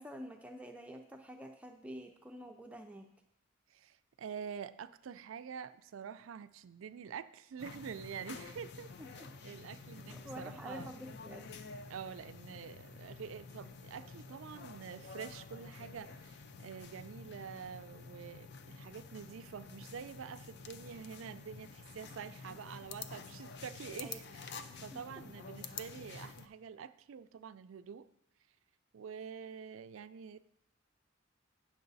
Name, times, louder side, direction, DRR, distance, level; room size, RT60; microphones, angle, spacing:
voice 1, 0.0-3.1 9.0-9.3 10.1-11.6 24.0-24.2 24.9-25.3, equal, 5° right, 3 dB, 0.4 m, -48 dB
voice 2, 3.7-8.9 9.1-10.9 11.9-24.5 24.8-28.1 28.9-30.4, right 7 dB, 75° right, 13 dB, 0.4 m, -47 dB
sound 1, 7.6-26.5, left 4 dB, 55° left, 0.5 m, -49 dB
9.5 x 6.3 x 4.0 m, 0.80 s
head